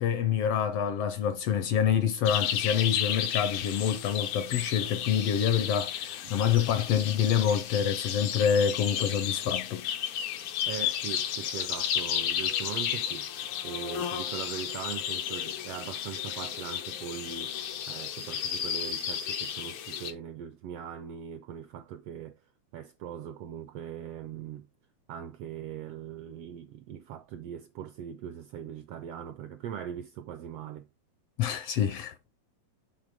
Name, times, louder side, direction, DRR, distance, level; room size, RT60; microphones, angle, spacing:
voice 1, 0.0-9.9 31.4-32.1, left 8 dB, 75° left, 1.5 m, -27 dB
sound 1, 2.2-20.1, left 9 dB, 90° left, 2.4 m, -33 dB
voice 2, 10.7-13.3 13.6-17.6 17.9-22.4 22.7-24.7 25.1-30.9, right 9 dB, 80° right, 1.4 m, -40 dB
6.7 x 3.3 x 5.0 m
omnidirectional pair, 3.3 m